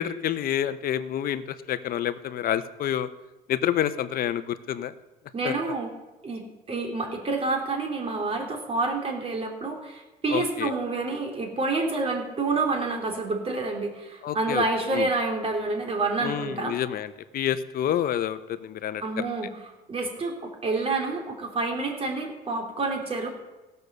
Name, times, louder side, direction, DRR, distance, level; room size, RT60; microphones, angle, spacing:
voice 1, 0.0-1.4 1.7-3.1 3.5-4.9 5.4-5.5 10.3-10.7 14.2-14.6 14.9-15.1 16.2-19.3, left 10 dB, 60° left, 13 dB, 0.8 m, -28 dB
voice 2, 5.3-5.9 6.2-16.7 19.0-19.5 19.9-23.3, right 3 dB, 35° right, 2 dB, 3.1 m, -28 dB
16.5 x 6.8 x 6.8 m, 1.1 s
cardioid pair, 110°, 17 cm